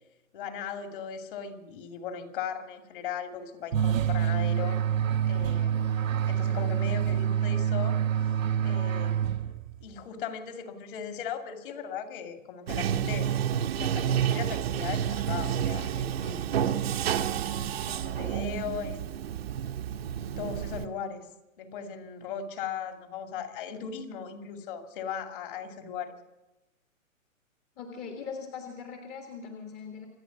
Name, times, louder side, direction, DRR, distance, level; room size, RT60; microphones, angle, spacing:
voice 1, 0.3-4.8 5.2-8.0 8.6-9.5 9.8-13.4 13.7-16.6 17.9-19.5 20.2-21.3 21.6-26.1, left 7 dB, 40° left, 6 dB, 2.4 m, -38 dB
sound 1, 3.7-9.8, right 9 dB, 70° right, 1.0 m, -27 dB
Bathtub (filling or washing), 12.7-20.9, right 9 dB, 45° right, 1.1 m, -30 dB
voice 2, 27.8-30.1, left 6 dB, 15° left, 3 dB, 1.4 m, -40 dB
26.5 x 9.1 x 6.0 m, 0.94 s
hypercardioid pair, 160°, 41 cm